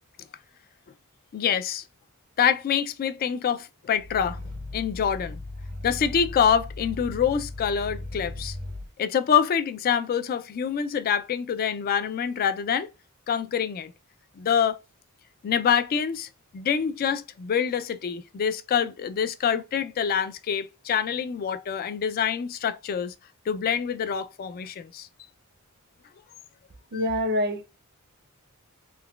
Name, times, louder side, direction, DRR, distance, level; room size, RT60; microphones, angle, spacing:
voice 1, 1.3-1.8 2.4-4.4 4.7-5.4 5.8-8.6 9.0-12.9 13.3-13.9 14.4-14.8 15.4-16.3 16.5-23.1 23.5-25.1 26.9-27.0, left 7 dB, 40° left, 0.3 m, -26 dB
Growling, 3.9-8.9, left 2 dB, 90° right, 0.6 m, -37 dB
voice 2, 26.9-27.7, left 1 dB, 45° right, 0.5 m, -25 dB
3.8 x 2.2 x 2.2 m
head